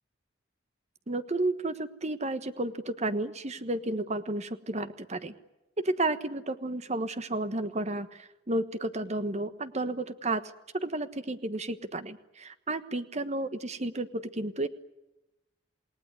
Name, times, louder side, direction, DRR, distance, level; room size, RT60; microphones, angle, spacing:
voice 1, 1.1-5.3 5.8-14.7, right 2 dB, 35° right, 11 dB, 1.3 m, -32 dB
28.5 x 19.0 x 9.6 m, 0.99 s
head